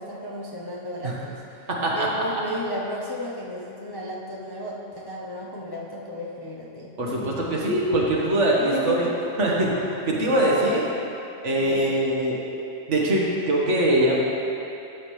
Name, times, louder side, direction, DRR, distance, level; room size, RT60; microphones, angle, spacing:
voice 1, 0.0-1.4 1.9-6.9 8.6-9.1 10.4-10.9 11.6-11.8, equal, 25° left, -5 dB, 0.7 m, -33 dB
voice 2, 1.7-2.1 7.0-9.1 9.4-9.7 10.1-10.8 11.4-12.4 12.9-14.3, right 1 dB, 70° right, -4 dB, 1.7 m, -22 dB
12.0 x 7.3 x 3.2 m, 2.8 s
omnidirectional pair, 1.3 m